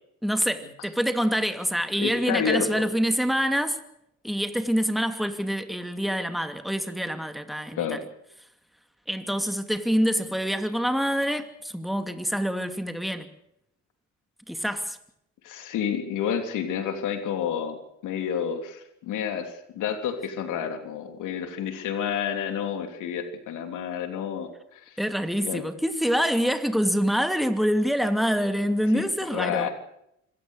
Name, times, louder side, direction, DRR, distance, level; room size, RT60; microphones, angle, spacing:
voice 1, 0.2-3.8 4.2-8.0 9.1-13.3 14.5-15.0 25.0-29.7, equal, ahead, 2.6 m, -26 dB
voice 2, 2.0-2.9 7.7-8.0 15.4-25.0 25.5-25.6 28.9-29.7, left 8 dB, 90° left, 3.4 m, -30 dB
25.5 x 17.0 x 6.6 m
cardioid pair, 90°, 30 cm